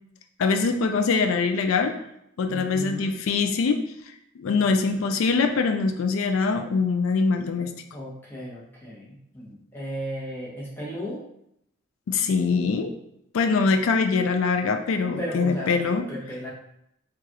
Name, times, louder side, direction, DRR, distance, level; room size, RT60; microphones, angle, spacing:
voice 1, 0.4-1.9 2.4-3.8 4.4-7.7 12.1-12.9 13.3-16.0, left 4 dB, 85° left, 6 dB, 0.4 m, -23 dB
voice 2, 2.4-3.2 4.5-5.0 7.9-11.2 15.2-16.5, equal, 10° left, -6 dB, 1.0 m, -35 dB
4.7 x 2.4 x 2.9 m, 0.78 s
head